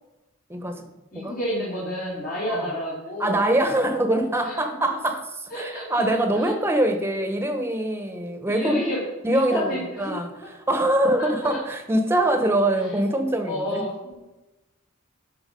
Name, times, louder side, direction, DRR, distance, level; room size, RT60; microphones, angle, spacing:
voice 1, 0.5-0.9 1.1-1.4 2.5-2.7 3.2-8.8 9.2-13.8, right 1 dB, 10° right, 6 dB, 1.1 m, -24 dB
voice 2, 1.1-3.4 4.4-4.5 5.5-6.1 6.3-6.5 8.5-9.0 9.3-10.2 11.2-11.6 13.4-14.2, left 1 dB, 40° left, -7 dB, 2.7 m, -30 dB
11.0 x 5.8 x 5.3 m, 1.0 s
head